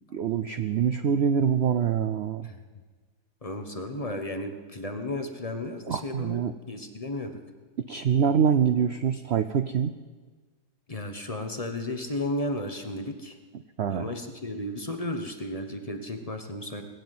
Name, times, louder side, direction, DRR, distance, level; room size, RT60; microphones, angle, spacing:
voice 1, 0.1-2.5 5.9-6.5 7.9-9.9 13.8-14.1, right 7 dB, 90° right, 10 dB, 0.5 m, -25 dB
voice 2, 3.4-7.4 10.9-13.3 13.9-16.8, left 1 dB, 25° left, 6 dB, 1.0 m, -34 dB
20.0 x 7.8 x 9.3 m, 1.4 s
omnidirectional pair, 1.8 m